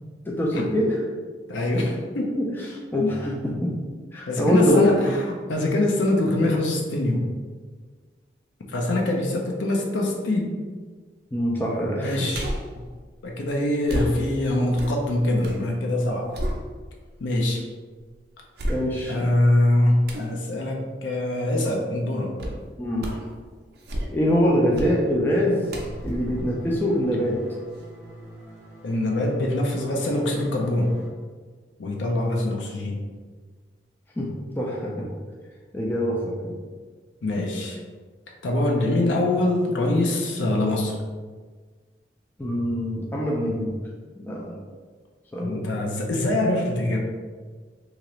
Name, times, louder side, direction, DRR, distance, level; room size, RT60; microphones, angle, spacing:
voice 1, 0.3-1.2 2.3-3.7 4.1-4.9 11.3-12.3 18.7-19.2 22.8-23.1 24.1-25.6 26.0-27.4 34.2-34.3 34.6-35.1 35.7-36.5 42.4-43.7 44.2-44.5 45.3-45.7, equal, 10° left, -4 dB, 0.3 m, -24 dB
voice 2, 1.5-2.4 4.3-7.3 8.7-10.5 12.0-12.5 13.2-16.3 17.2-17.7 19.1-22.3 28.8-31.0 31.8-33.0 37.2-37.8 38.4-41.0 45.4-47.0, left 1 dB, 85° left, 0 dB, 0.5 m, -24 dB
sound 1, 12.3-12.8 13.9-15.7 16.0-17.1 17.6-17.7 18.6-19.2 20.1-20.4 22.4-22.6 23.0-23.3 23.7-24.3 24.7-25.0 25.7-27.4 27.8-27.9, equal, 60° right, 0.5 m, -32 dB
sound 2, 25.5-31.1, right 1 dB, 5° right, 0.9 m, -44 dB
2.9 x 2.4 x 3.0 m, 1.5 s
head